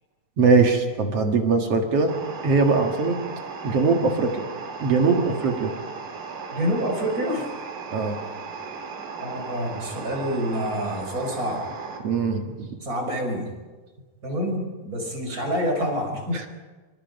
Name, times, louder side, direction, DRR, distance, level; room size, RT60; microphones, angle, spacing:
voice 1, 0.4-2.1 2.4-3.2 3.6-4.4 4.8-5.7 7.9-8.2 12.0-12.7 16.3-16.5, right 4 dB, 50° right, 4 dB, 2.1 m, -21 dB
sound 1, 2.1-12.0, right 5 dB, 85° right, 4.9 m, -36 dB
voice 2, 6.5-7.5 9.2-11.6 12.8-13.5 14.2-16.4, equal, 20° right, 2 dB, 5.3 m, -27 dB
27.5 x 24.0 x 5.4 m, 1.3 s
omnidirectional pair, 4.8 m